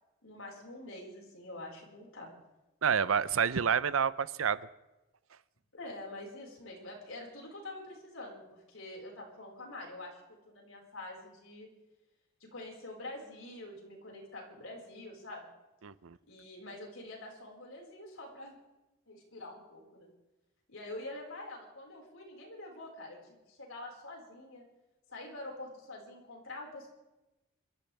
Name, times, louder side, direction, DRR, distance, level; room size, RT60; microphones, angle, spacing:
voice 1, 0.2-2.3 5.7-11.7 12.4-15.5 16.3-18.6 19.1-20.1 20.7-24.6 25.1-26.9, left 2 dB, 85° left, -1 dB, 5.0 m, -46 dB
voice 2, 2.8-4.6 15.8-16.2, right 7 dB, 85° right, 17 dB, 0.6 m, -28 dB
27.5 x 14.0 x 3.4 m, 1.0 s
head